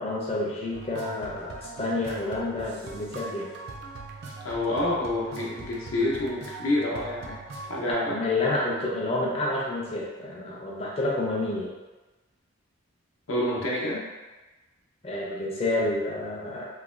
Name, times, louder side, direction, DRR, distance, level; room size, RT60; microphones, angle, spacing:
voice 1, 0.0-3.5 7.9-11.7 15.0-16.7, left 2 dB, 30° left, -4 dB, 0.5 m, -29 dB
sound 1, 0.7-7.9, right 3 dB, 50° right, 0.3 m, -41 dB
voice 2, 4.4-7.4 7.7-8.2 13.3-14.0, left 1 dB, 75° left, -4 dB, 0.7 m, -28 dB
3.1 x 2.1 x 2.4 m, 1.2 s
head